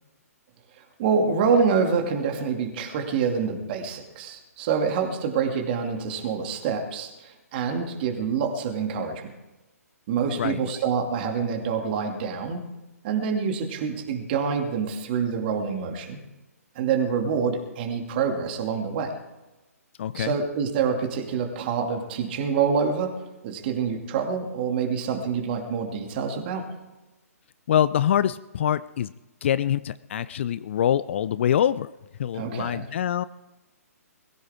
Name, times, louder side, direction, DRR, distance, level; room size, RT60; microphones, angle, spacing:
voice 1, 1.0-9.3 10.1-12.6 13.0-16.2 16.7-19.2 20.1-23.1 23.4-26.7 32.3-32.8, right 6 dB, 40° right, 3 dB, 2.6 m, -26 dB
voice 2, 10.3-10.6 20.0-20.4 27.7-29.1 29.4-31.9 32.2-33.2, left 10 dB, 50° left, 16 dB, 0.5 m, -24 dB
22.0 x 15.0 x 3.7 m, 1.1 s
figure-of-eight pair, 130°, 9 cm